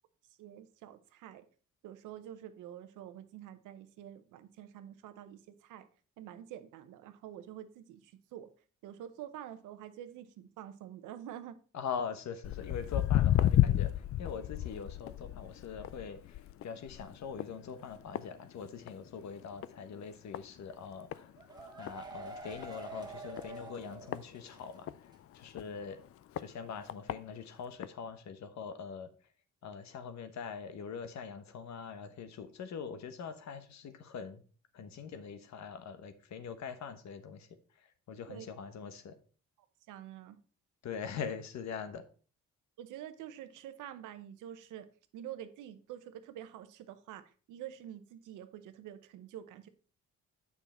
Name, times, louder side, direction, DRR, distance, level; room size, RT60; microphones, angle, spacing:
voice 1, 0.4-1.4 1.8-5.9 6.2-8.5 8.8-11.6 38.3-38.5 39.9-40.4 42.8-44.9 45.1-49.7, right 11 dB, 90° right, 11 dB, 0.8 m, -47 dB
voice 2, 11.7-21.3 21.8-25.1 25.3-26.0 26.4-29.1 29.6-34.4 34.7-39.1 40.8-42.0, left 6 dB, 65° left, 10 dB, 1.1 m, -43 dB
Walk footsteps, 12.4-19.1 19.4-19.8 20.3-20.4 21.1-21.2 21.6-21.7 21.9-22.0 22.5-22.7 23.4-25.0 25.5-25.6 26.4-26.5 26.9-27.1 27.8-27.9, left 13 dB, 50° left, 0.4 m, -31 dB
sound 1, 21.1-24.8 25.1-25.2 25.5-25.6, right 3 dB, 15° right, 1.9 m, -47 dB
7.1 x 5.7 x 4.2 m, 0.40 s
cardioid pair, 90°, 30 cm